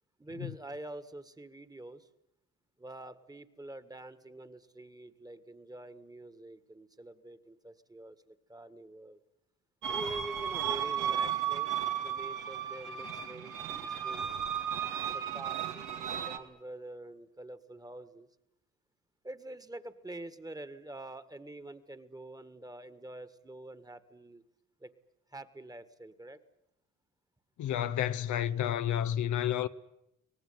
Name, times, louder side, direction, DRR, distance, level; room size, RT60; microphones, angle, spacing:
voice 1, 0.2-2.1 2.8-9.2 9.9-14.2 15.1-18.3 19.2-24.4 24.8-24.9 25.3-26.4, right 2 dB, 10° right, 1.7 m, -46 dB
sound 1, 9.8-16.4, right 9 dB, 85° right, 2.1 m, -34 dB
voice 2, 27.6-29.7, left 10 dB, 75° left, 0.9 m, -30 dB
24.5 x 18.5 x 9.5 m
cardioid pair, 90°, 30 cm